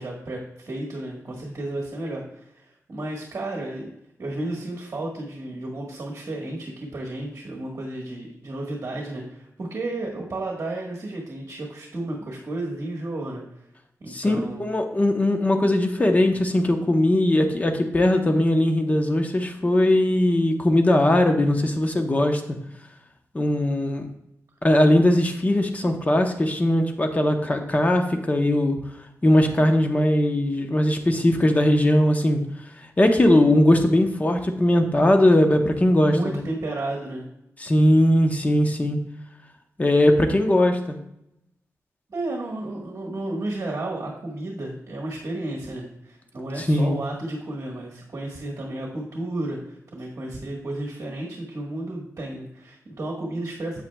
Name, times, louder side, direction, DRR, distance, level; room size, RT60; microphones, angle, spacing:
voice 1, 0.0-3.9 4.2-13.4 14.0-14.6 36.0-37.2 42.1-53.8, right 2 dB, 50° right, -2 dB, 1.4 m, -32 dB
voice 2, 14.1-22.4 23.3-24.1 24.6-28.8 29.2-32.4 33.0-36.4 37.6-39.0 39.8-41.0 46.6-47.0, left 1 dB, 25° left, 4 dB, 0.8 m, -20 dB
8.7 x 8.1 x 2.3 m, 0.80 s
wide cardioid pair, 115°, 6 cm